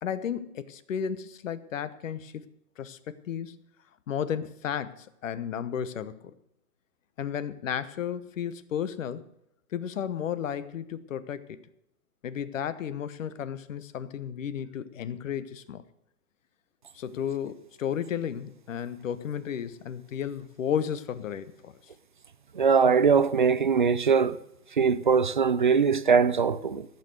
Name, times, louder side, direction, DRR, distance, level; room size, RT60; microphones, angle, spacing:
voice 1, 0.0-2.4 2.8-3.6 4.1-6.3 7.2-9.2 9.7-11.6 12.2-15.8 16.9-21.8, left 8 dB, 55° left, 1.1 m, -33 dB
voice 2, 22.6-24.4 24.8-26.9, right 6 dB, 35° right, 0.4 m, -21 dB
15.0 x 7.0 x 7.6 m
hypercardioid pair, 145°, 47 cm